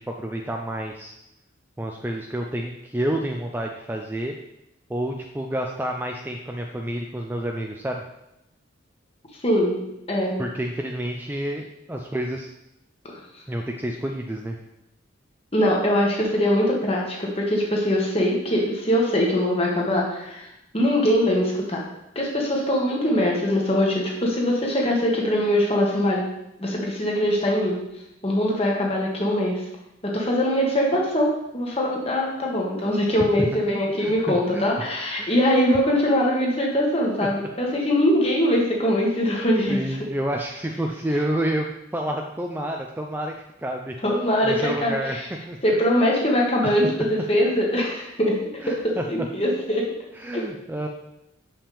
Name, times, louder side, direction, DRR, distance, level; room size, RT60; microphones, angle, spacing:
voice 1, 0.1-1.1 1.8-4.3 4.9-8.0 10.4-12.5 13.5-14.6 33.4-33.5 34.0-34.7 35.2-35.4 39.7-41.7 41.9-43.9 44.4-45.2 45.5-45.6 46.6-46.8 48.6-49.0 50.2-50.9, right 1 dB, 10° right, 2 dB, 0.4 m, -29 dB
voice 2, 9.4-10.4 13.0-13.2 15.5-21.8 22.1-26.3 26.6-27.8 28.2-29.6 30.0-40.0 44.0-45.2 45.6-48.4 48.7-49.8 50.3-50.4, equal, 30° left, -2 dB, 1.4 m, -22 dB
7.1 x 5.7 x 3.4 m, 0.86 s
head